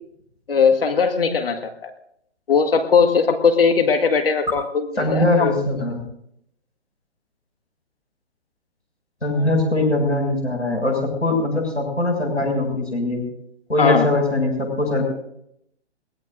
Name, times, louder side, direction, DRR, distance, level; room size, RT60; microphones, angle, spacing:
voice 1, 0.5-1.9 2.5-5.5 9.3-9.5 13.8-14.1, left 5 dB, 55° left, 6 dB, 1.8 m, -19 dB
voice 2, 5.0-6.0 9.2-13.2 13.7-15.1, left 2 dB, 85° left, 2 dB, 6.8 m, -21 dB
22.5 x 19.0 x 2.6 m, 0.73 s
figure-of-eight pair, 135°, 35 cm